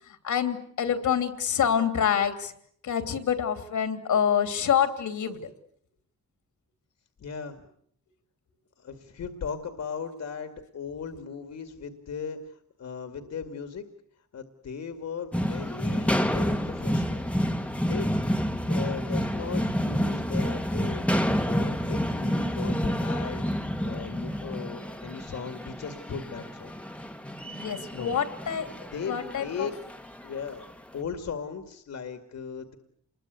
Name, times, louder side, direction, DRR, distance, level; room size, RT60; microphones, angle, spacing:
voice 1, 0.2-2.5 2.8-5.4 27.4-28.7 29.1-29.7, left 8 dB, 75° left, 9 dB, 3.0 m, -26 dB
voice 2, 7.2-7.6 8.8-13.9 14.3-17.2 17.9-18.1 18.7-21.0 21.4-23.5 23.8-26.7 27.9-28.1 28.7-29.8 30.2-30.6 30.9-32.8, left 6 dB, 60° left, 7 dB, 2.3 m, -37 dB
sound 1, 15.3-30.6, equal, 5° left, 1.5 m, -29 dB
27.5 x 21.5 x 8.2 m, 0.66 s
cardioid pair, 110°, 30 cm